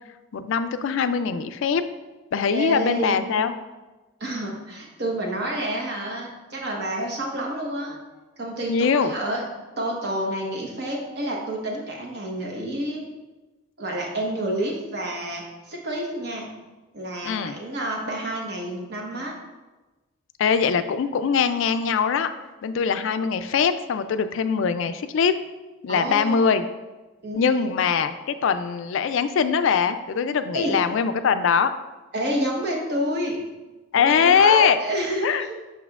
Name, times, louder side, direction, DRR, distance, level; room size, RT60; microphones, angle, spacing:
voice 1, 0.3-1.8 2.3-3.5 8.7-9.1 17.2-17.5 20.4-22.3 22.6-25.3 25.8-26.6 27.4-31.7 33.9-34.8 35.2-35.5, left 6 dB, 65° left, 10 dB, 0.3 m, -22 dB
voice 2, 2.5-3.2 4.2-8.0 8.4-9.4 9.8-13.0 13.8-16.5 16.9-19.3 25.9-26.5 27.2-27.7 30.5-30.8 32.1-33.4 33.9-35.5, right 1 dB, 50° right, -1 dB, 1.1 m, -29 dB
7.1 x 5.7 x 2.3 m, 1.2 s
head